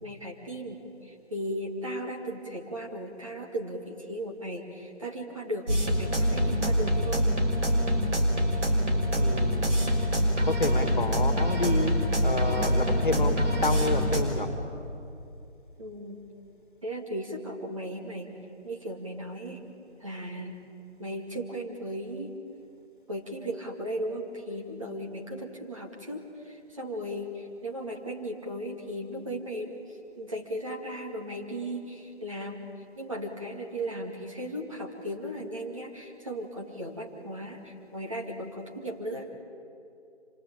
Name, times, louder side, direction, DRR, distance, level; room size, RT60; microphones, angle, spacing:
voice 1, 0.0-7.3 15.8-16.2 16.8-18.3 18.6-19.6 20.0-20.6 21.0-22.3 23.1-29.7 30.2-32.7 33.0-39.3, right 1 dB, 30° right, 0 dB, 2.2 m, -36 dB
sound 1, 5.7-14.2, equal, 80° right, 5.9 m, -25 dB
voice 2, 9.2-9.8 10.5-12.0 12.2-14.5, left 3 dB, 45° left, 7 dB, 2.2 m, -29 dB
26.5 x 20.0 x 8.9 m, 2.7 s
figure-of-eight pair, 175°, 35 cm